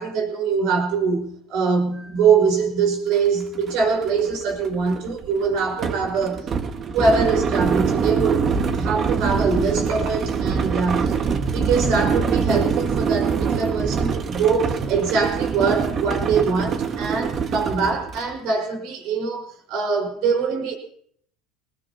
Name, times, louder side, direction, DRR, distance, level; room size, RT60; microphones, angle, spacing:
voice 1, 0.0-6.5 6.8-20.7, right 5 dB, 65° right, 2 dB, 4.7 m, -23 dB
sound 1, 3.1-3.2 3.6-18.3, right 6 dB, 40° right, 1.4 m, -24 dB
22.0 x 19.5 x 2.8 m, 0.64 s
supercardioid pair, 105°, 0 cm